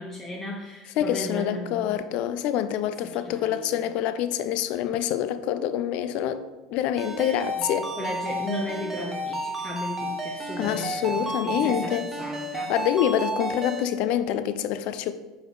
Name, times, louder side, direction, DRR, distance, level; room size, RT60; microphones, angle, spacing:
voice 1, 0.0-1.9 3.0-3.9 7.2-7.4 8.0-12.7, left 2 dB, 20° left, 0.7 m, -35 dB
voice 2, 1.0-6.4 6.7-7.9 10.6-12.1 12.7-15.1, left 10 dB, 55° left, 0.4 m, -26 dB
Ringtone, 7.0-13.8, right 1 dB, 15° right, 1.2 m, -32 dB
5.0 x 4.0 x 4.9 m
hypercardioid pair, 80°, 2 cm